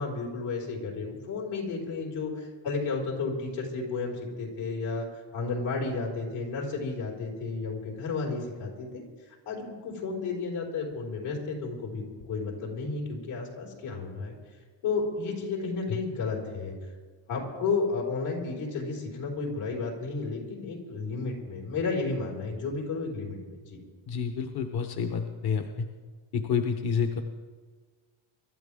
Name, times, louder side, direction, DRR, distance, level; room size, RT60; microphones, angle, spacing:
voice 1, 0.0-5.1 5.3-14.3 14.8-16.7 17.3-23.8, left 4 dB, 85° left, -2 dB, 5.4 m, -32 dB
voice 2, 24.1-25.9 26.3-27.2, left 6 dB, 50° left, 6 dB, 1.0 m, -29 dB
24.0 x 13.0 x 3.7 m, 1.5 s
cardioid pair, 120°, 47 cm